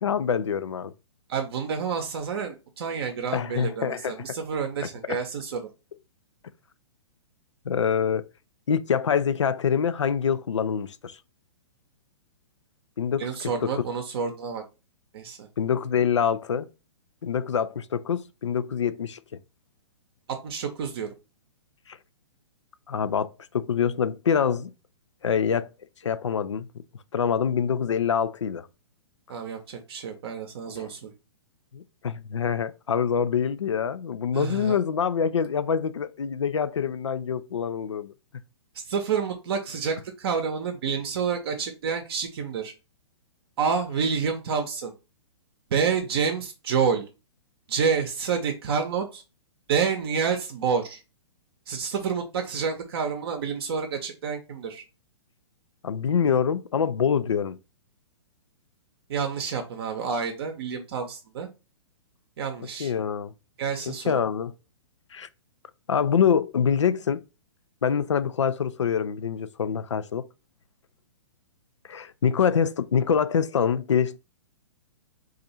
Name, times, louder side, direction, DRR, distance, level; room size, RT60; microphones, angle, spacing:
voice 1, 0.0-0.9 3.3-4.4 4.8-5.2 7.7-8.3 8.7-11.2 13.0-13.8 15.6-16.7 17.2-19.2 21.9-22.0 22.9-24.7 25.2-25.7 26.0-26.7 27.1-28.7 31.7-38.1 55.8-57.6 62.6-63.3 63.9-64.5 65.1-65.3 65.9-67.2 67.8-70.3 71.9-74.2, left 7 dB, 85° left, 0.4 m, -25 dB
voice 2, 1.3-5.6 13.2-14.6 15.1-15.5 20.3-21.1 29.3-31.1 34.3-34.8 38.9-42.7 43.6-44.9 45.7-47.0 47.7-49.2 49.7-51.0 51.7-54.8 59.1-61.5 62.4-62.9 63.6-64.2, right 6 dB, 55° right, 0.7 m, -28 dB
2.6 x 2.4 x 4.1 m
hypercardioid pair, 125°, 15 cm